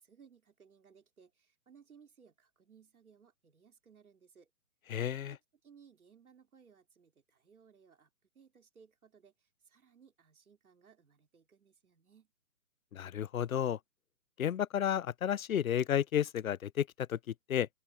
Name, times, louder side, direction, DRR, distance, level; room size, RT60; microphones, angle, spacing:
voice 1, 0.0-4.5 5.3-12.3, right 6 dB, 75° right, 4.4 m, -62 dB
voice 2, 4.9-5.3 12.9-13.8 14.4-17.7, left 10 dB, 70° left, 0.8 m, -32 dB
open air
hypercardioid pair, 140°, 44 cm